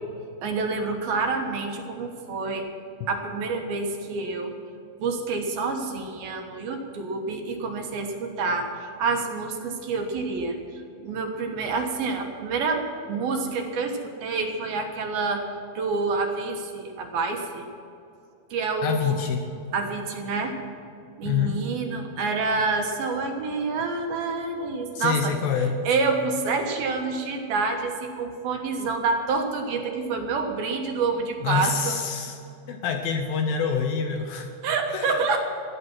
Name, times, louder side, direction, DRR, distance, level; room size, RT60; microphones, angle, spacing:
voice 1, 0.4-2.7 3.1-4.5 5.0-15.5 15.8-17.7 18.5-19.2 19.7-20.6 21.2-25.3 25.8-32.0 34.6-35.4, right 4 dB, 70° right, 4 dB, 2.8 m, -28 dB
voice 2, 18.8-19.4 21.2-21.6 25.0-25.8 31.4-32.4 32.7-34.5 34.9-35.2, left 6 dB, 70° left, 5 dB, 2.4 m, -26 dB
16.5 x 12.0 x 6.1 m, 2.7 s
omnidirectional pair, 4.8 m